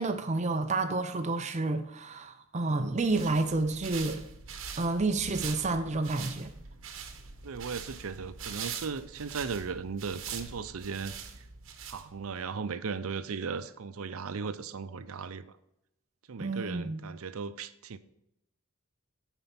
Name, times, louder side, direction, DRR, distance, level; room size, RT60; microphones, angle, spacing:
voice 1, 0.0-4.2 4.8-6.5 16.4-17.0, right 3 dB, 30° right, 0.5 m, -30 dB
sound 1, 2.9-12.4, right 6 dB, 60° right, 1.0 m, -43 dB
voice 2, 7.4-11.1 11.9-15.4 16.3-18.0, right 5 dB, 80° right, 0.6 m, -37 dB
9.5 x 4.5 x 5.8 m
head